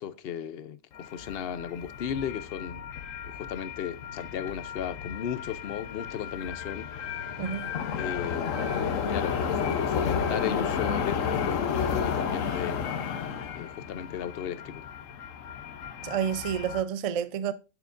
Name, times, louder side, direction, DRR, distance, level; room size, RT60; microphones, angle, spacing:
voice 1, 0.0-2.9 3.2-6.9 8.0-13.1 13.5-14.9, left 8 dB, 60° left, 0.8 m, -36 dB
sound 1, 0.9-16.8, left 6 dB, 85° left, 1.2 m, -32 dB
voice 2, 7.4-7.7 16.0-17.5, right 8 dB, 55° right, 0.3 m, -29 dB
10.0 x 6.7 x 2.5 m
omnidirectional pair, 1.3 m